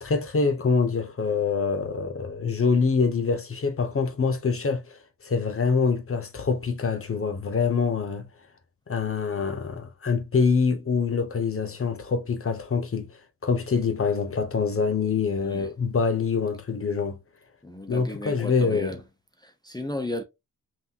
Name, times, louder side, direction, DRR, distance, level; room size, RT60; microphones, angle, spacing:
voice 1, 0.0-8.3 8.9-17.2 17.9-19.0, left 5 dB, 40° left, 0.9 m, -25 dB
voice 2, 17.6-19.0 19.4-20.2, left 1 dB, 10° left, 0.6 m, -34 dB
5.8 x 2.5 x 2.8 m
wide cardioid pair, 160°, 35 cm